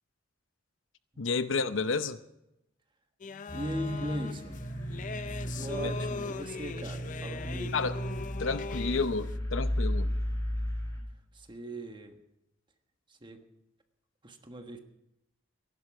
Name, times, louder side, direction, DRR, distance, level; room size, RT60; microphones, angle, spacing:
voice 1, 1.2-2.2 7.7-7.9 8.4-10.1, left 4 dB, 70° left, 0.7 m, -30 dB
sound 1, 3.2-9.2, left 5 dB, 40° left, 0.4 m, -40 dB
sound 2, 3.5-11.0, equal, 15° left, 4.6 m, -34 dB
voice 2, 3.5-4.6 5.5-7.8 11.3-12.2 13.1-13.4 14.2-14.8, right 1 dB, 25° right, 1.4 m, -40 dB
15.5 x 11.0 x 6.0 m
head